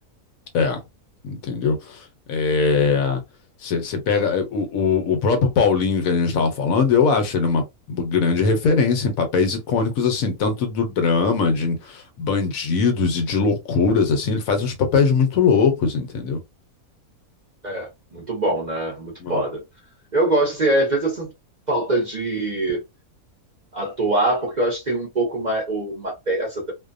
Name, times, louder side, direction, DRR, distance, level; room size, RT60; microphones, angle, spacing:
voice 1, 1.2-2.0 2.3-3.2 3.6-16.4 19.2-19.4, left 5 dB, 70° left, 1.1 m, -21 dB
voice 2, 17.6-19.6 20.1-21.3 21.7-22.8 23.7-26.7, right 2 dB, 40° right, 0.7 m, -23 dB
2.6 x 2.1 x 2.4 m
omnidirectional pair, 1.6 m